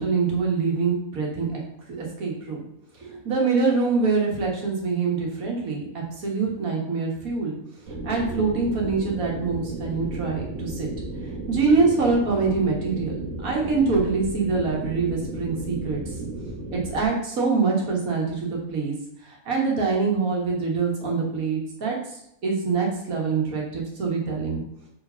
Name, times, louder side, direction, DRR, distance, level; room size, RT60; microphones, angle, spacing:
voice 1, 0.0-1.6 1.9-2.6 3.0-7.6 7.9-10.9 11.2-16.0 16.7-18.9 19.2-24.6, right 4 dB, 75° right, -1 dB, 2.0 m, -25 dB
sound 1, 7.9-17.0, right 2 dB, 60° right, 1.7 m, -34 dB
5.0 x 4.6 x 5.6 m, 0.77 s
omnidirectional pair, 1.5 m